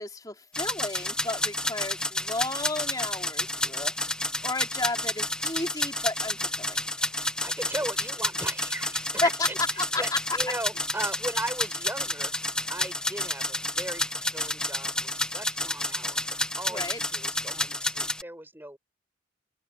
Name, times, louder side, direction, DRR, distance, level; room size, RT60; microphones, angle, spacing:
voice 1, 0.0-3.9 4.4-6.4 6.7-6.8 9.1-9.5 9.8-10.0 16.7-17.0, left 2 dB, 20° left, 3.9 m, -32 dB
sound 1, 0.5-18.2, left 1 dB, 5° left, 0.8 m, -30 dB
voice 2, 7.1-12.3 12.7-18.8, right 1 dB, 10° right, 6.4 m, -37 dB
open air
head